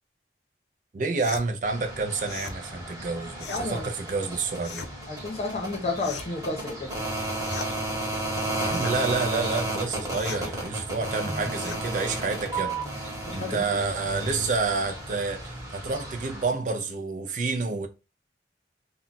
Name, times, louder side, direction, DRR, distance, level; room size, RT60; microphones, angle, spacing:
voice 1, 0.9-4.8 8.6-17.9, right 4 dB, 45° right, 0.4 m, -29 dB
sound 1, 1.2-1.5 2.2-2.6 3.4-3.7 4.6-4.9 6.0-6.4 7.4-7.7 8.7-9.0 10.1-10.5 11.6-11.8, left 5 dB, 70° left, 0.4 m, -38 dB
sound 2, 1.6-16.4, right 1 dB, 20° right, 1.0 m, -33 dB
voice 2, 3.5-3.9 5.1-6.9 13.3-13.6, left 3 dB, 35° left, 0.7 m, -31 dB
2.3 x 2.1 x 3.8 m
head